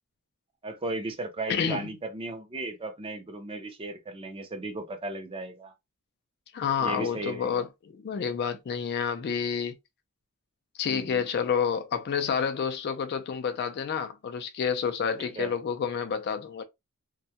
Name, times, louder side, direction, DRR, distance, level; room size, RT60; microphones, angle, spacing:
voice 1, 0.6-5.7 6.8-7.6 10.9-11.2 15.2-15.5, right 2 dB, 25° right, 0.5 m, -36 dB
voice 2, 1.5-1.9 6.5-9.7 10.8-16.6, left 7 dB, 50° left, 0.3 m, -29 dB
2.2 x 2.1 x 2.7 m
head